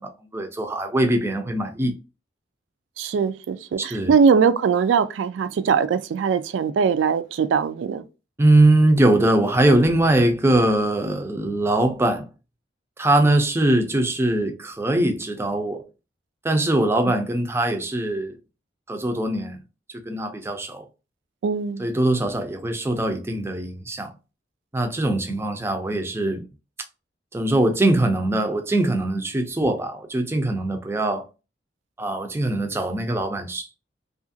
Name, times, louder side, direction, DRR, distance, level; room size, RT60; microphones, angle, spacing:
voice 1, 0.0-1.9 3.8-4.1 8.4-12.3 13.0-15.8 16.4-18.3 18.9-19.6 20.1-20.8 21.8-24.1 24.7-26.4 27.3-31.3 32.0-33.7, right 1 dB, 15° right, 0.4 m, -21 dB
voice 2, 3.0-8.0 21.4-21.8, right 6 dB, 90° right, 0.3 m, -21 dB
2.8 x 2.4 x 2.6 m
head